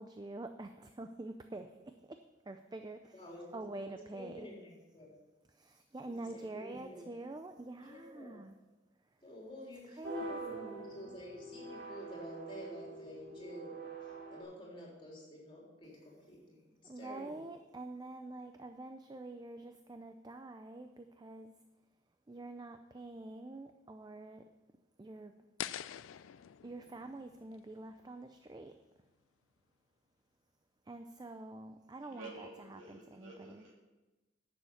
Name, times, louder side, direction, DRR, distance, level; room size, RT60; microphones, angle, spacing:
voice 1, 0.0-4.5 5.5-8.6 9.0-9.2 9.9-11.2 16.8-21.6 22.3-24.5 25.0-25.3 26.2-28.8 30.8-33.6, right 2 dB, 20° right, 7 dB, 0.4 m, -47 dB
voice 2, 3.1-3.9 4.1-5.1 6.1-7.0 7.8-8.3 9.2-17.4, equal, 25° left, -3 dB, 3.4 m, -50 dB
sound 1, 10.0-14.4, right 2 dB, 55° right, 2.3 m, -45 dB
sound 2, 25.6-28.6, left 10 dB, 80° left, 0.4 m, -46 dB
voice 3, 32.0-33.8, right 2 dB, 75° right, -2 dB, 3.2 m, -51 dB
11.0 x 7.1 x 7.1 m, 1.1 s
head